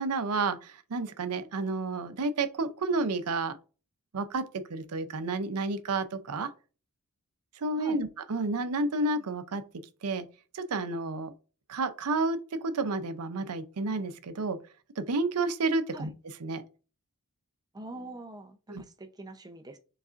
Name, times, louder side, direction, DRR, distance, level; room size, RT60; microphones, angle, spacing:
voice 1, 0.0-3.6 4.1-6.5 7.6-9.6 10.0-10.3 10.5-11.3 11.7-14.6 15.0-16.1 16.4-16.6 18.7-18.8, right 3 dB, 80° right, 0.6 m, -30 dB
voice 2, 17.7-19.8, right 2 dB, 15° right, 0.6 m, -44 dB
4.9 x 4.0 x 2.5 m
head